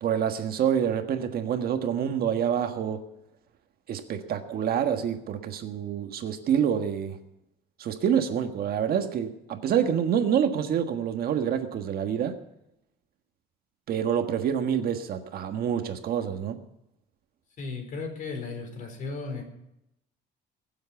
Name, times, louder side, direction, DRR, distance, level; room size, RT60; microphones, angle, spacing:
voice 1, 0.0-3.0 3.9-7.2 7.8-12.4 13.9-16.6, right 8 dB, 55° right, 7 dB, 1.5 m, -27 dB
voice 2, 17.6-19.4, left 4 dB, 45° left, 4 dB, 4.5 m, -35 dB
22.5 x 7.7 x 7.1 m, 0.85 s
cardioid pair, 145°, 19 cm